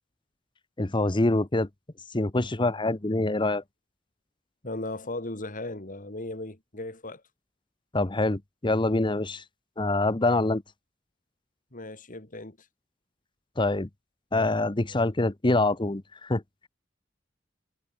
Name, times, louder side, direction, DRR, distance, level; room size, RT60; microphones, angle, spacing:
voice 1, 0.8-1.7 2.1-3.6 7.9-9.4 9.8-10.6 13.6-13.9 14.3-16.4, left 2 dB, 25° left, 1.0 m, -25 dB
voice 2, 4.6-7.2 11.7-12.7, left 2 dB, 45° left, 3.3 m, -37 dB
head